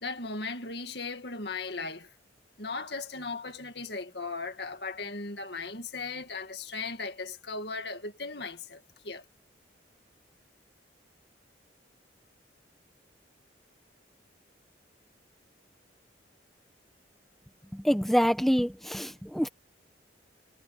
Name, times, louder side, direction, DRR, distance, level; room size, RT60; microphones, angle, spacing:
voice 1, 0.0-2.1 2.6-9.2, left 3 dB, 60° left, 2.2 m, -37 dB
voice 2, 17.7-19.5, equal, ahead, 1.0 m, -26 dB
head